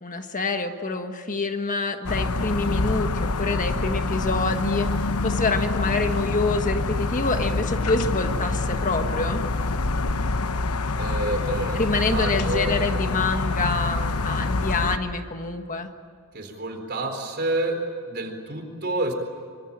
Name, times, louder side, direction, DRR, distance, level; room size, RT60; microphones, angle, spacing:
voice 1, 0.0-9.4 11.7-15.9, left 3 dB, 35° left, 6 dB, 1.5 m, -27 dB
sound 1, 2.1-15.0, left 3 dB, 80° left, 1.0 m, -26 dB
voice 2, 11.0-11.8 12.1-12.8 16.3-17.8 18.1-19.1, right 2 dB, 45° right, 5 dB, 4.1 m, -28 dB
25.5 x 25.0 x 8.8 m, 2.2 s
head